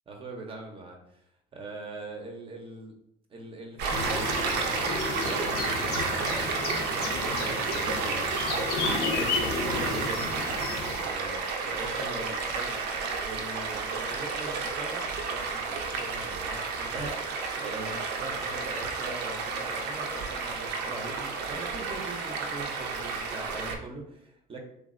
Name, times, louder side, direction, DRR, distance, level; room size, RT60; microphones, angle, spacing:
voice 1, 0.1-1.2 1.5-2.9 3.3-5.7 6.0-6.4 6.9-12.8 13.2-24.6, right 2 dB, 30° right, 1 dB, 0.5 m, -42 dB
Stream, 3.8-23.8, right 4 dB, 85° right, 0.4 m, -31 dB
sound 1, 3.9-11.0, left 4 dB, 70° left, 0.5 m, -33 dB
3.3 x 2.0 x 2.4 m, 0.77 s
cardioid pair, 110°, 17 cm